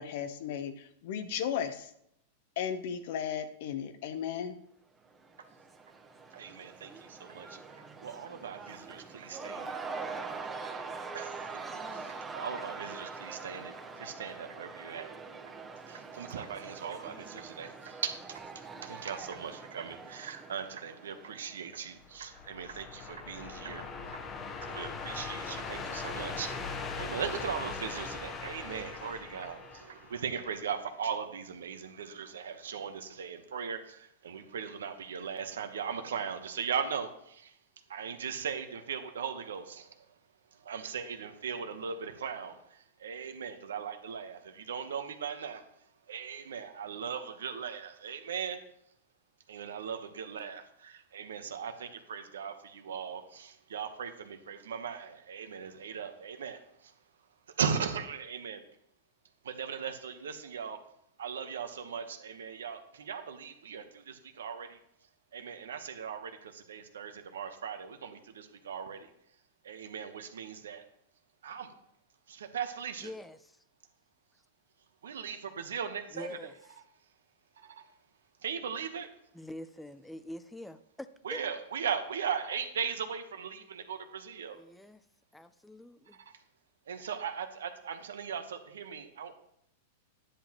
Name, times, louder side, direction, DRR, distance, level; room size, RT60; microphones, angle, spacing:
voice 1, 0.0-1.9 2.6-4.6, left 8 dB, 60° left, 0.9 m, -35 dB
Cheering / Crowd, 5.1-22.0, right 4 dB, 15° right, 1.1 m, -44 dB
voice 2, 6.3-9.7 11.1-11.4 11.9-15.1 15.9-18.4 18.8-23.9 24.1-24.2 24.6-37.6 37.9-40.1 40.5-45.7 46.1-48.6 49.5-56.9 57.5-58.6 59.4-60.8 61.2-64.8 65.3-69.1 69.6-70.8 71.4-71.7 72.3-73.1 75.0-76.5 77.6-77.8 78.4-79.1 81.2-84.6 86.1-86.3 86.9-89.3, right 7 dB, 80° right, 1.0 m, -38 dB
sound 1, 22.0-30.5, left 4 dB, 30° left, 1.0 m, -40 dB
voice 3, 73.0-73.6 76.1-76.5 79.3-81.4 84.5-85.0 85.3-86.2, left 1 dB, 5° left, 0.5 m, -45 dB
10.0 x 7.5 x 3.0 m
hypercardioid pair, 105°, 0 cm